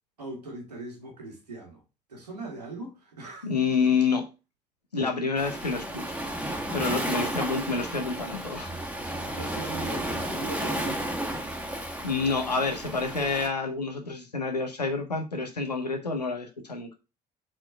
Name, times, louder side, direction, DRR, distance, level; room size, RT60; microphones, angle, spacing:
voice 1, 0.2-1.8 2.1-3.5 7.1-7.4 9.4-11.6, right 2 dB, 80° right, 1.8 m, -40 dB
voice 2, 3.4-4.3 4.9-6.0 6.7-8.7 12.0-16.9, left 4 dB, 85° left, 0.7 m, -28 dB
Waves surf, 5.4-13.5, right 1 dB, 5° right, 1.2 m, -33 dB
4.5 x 4.4 x 5.7 m
figure-of-eight pair, 55°, 20 cm